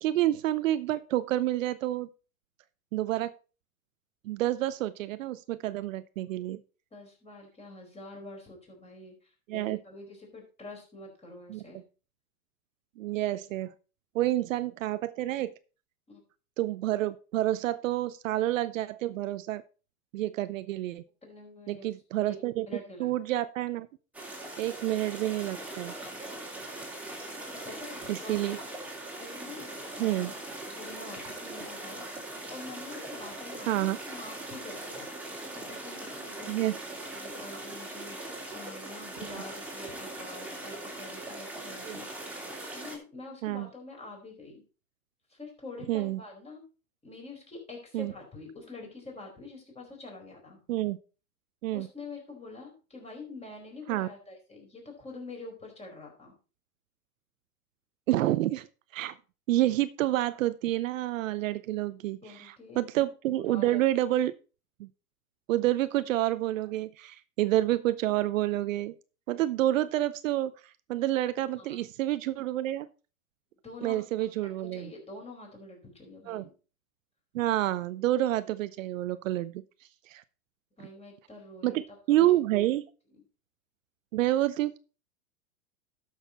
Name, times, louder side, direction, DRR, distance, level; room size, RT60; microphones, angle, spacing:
voice 1, 0.0-2.1 2.9-3.3 4.2-6.6 9.5-9.8 11.5-11.6 13.0-13.7 14.1-15.5 16.6-19.6 20.1-21.0 21.7-22.7 23.0-23.9 24.6-25.9 28.1-28.6 30.0-30.3 33.7-34.0 36.5-36.7 39.3-39.4 41.8-42.0 43.4-43.7 45.9-46.2 47.9-48.1 50.7-51.0 51.6-51.9 53.9-54.1 58.1-58.7 58.9-59.1 59.5-64.3 64.8-64.9 65.5-68.9 69.3-70.5 70.9-72.9 73.8-74.9 76.3-76.4 77.3-79.6 80.1-80.2 81.6-82.9 84.1-84.8, right 14 dB, 60° right, 14 dB, 0.7 m, -28 dB
voice 2, 6.9-11.8 16.1-16.2 21.2-21.9 22.3-22.4 22.7-23.1 27.5-28.6 29.2-30.4 30.7-36.5 37.1-42.4 42.7-44.6 45.3-46.6 47.0-50.6 51.7-56.4 62.2-62.8 63.3-63.8 71.6-71.8 73.6-74.3 74.6-76.5 80.8-81.8 82.1-82.3 83.1-83.2, left 2 dB, 15° left, 1 dB, 4.6 m, -46 dB
sound 1, 24.1-43.0, right 1 dB, 5° right, 2.8 m, -41 dB
12.0 x 6.6 x 4.2 m, 0.34 s
hypercardioid pair, 115°, 43 cm